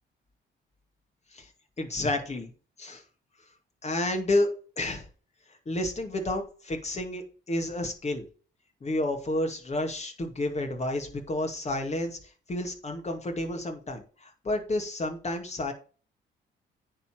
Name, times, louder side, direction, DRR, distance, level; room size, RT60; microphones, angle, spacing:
voice 1, 1.8-2.5 2.8-3.0 3.8-4.5 4.8-5.1 5.7-8.3 8.8-12.2 12.5-15.7, left 1 dB, 35° left, 4 dB, 2.4 m, -30 dB
9.7 x 4.1 x 6.5 m, 0.38 s
cardioid pair, 90°, 20 cm